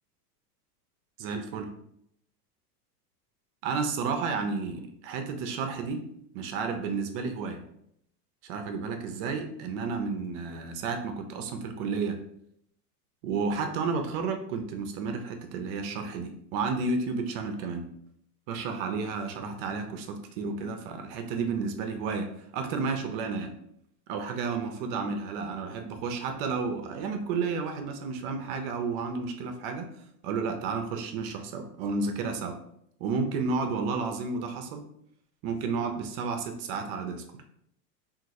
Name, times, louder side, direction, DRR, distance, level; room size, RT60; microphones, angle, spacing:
voice 1, 1.2-1.7 3.6-6.1 6.3-7.6 8.4-12.2 13.2-17.9 18.5-23.6 24.1-29.9 30.2-32.6 33.0-34.8 35.4-37.2, right 4 dB, 40° right, 6 dB, 0.4 m, -32 dB
2.9 x 2.4 x 2.6 m, 0.73 s
hypercardioid pair, 115°, 48 cm